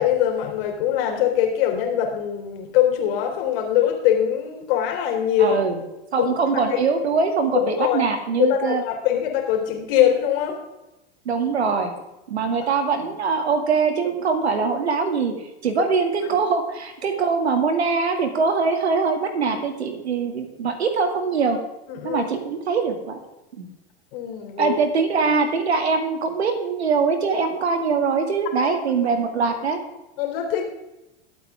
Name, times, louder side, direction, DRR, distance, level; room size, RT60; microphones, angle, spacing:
voice 1, 0.0-5.6 6.2-6.3 7.5-8.0 8.4-10.6 21.9-22.3 24.1-24.8 28.6-28.7 30.2-30.6, left 10 dB, 60° left, 3 dB, 3.4 m, -22 dB
voice 2, 5.4-5.8 6.1-8.8 11.3-11.9 12.3-15.3 15.6-21.6 22.0-23.2 23.6-23.7 24.6-29.8, right 5 dB, 80° right, 6 dB, 2.4 m, -22 dB
22.0 x 8.4 x 3.6 m, 0.98 s
hypercardioid pair, 95°, 32 cm